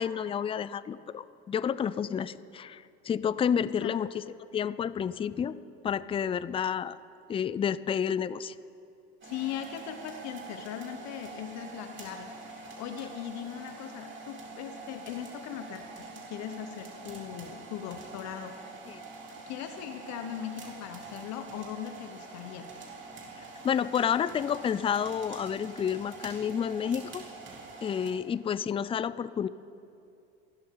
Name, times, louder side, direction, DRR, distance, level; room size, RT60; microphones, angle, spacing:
voice 1, 0.0-4.2 4.5-5.6 5.8-7.0 7.3-8.5 18.9-19.0 23.6-27.2 27.8-29.5, left 8 dB, 20° left, 16 dB, 0.4 m, -30 dB
voice 2, 9.2-15.9 16.3-18.5 19.5-22.7, left 9 dB, 60° left, 7 dB, 1.1 m, -39 dB
sound 1, 9.2-28.1, right 3 dB, 35° right, 3.3 m, -45 dB
29.0 x 12.0 x 3.8 m, 2.6 s
supercardioid pair, 100°, 31 cm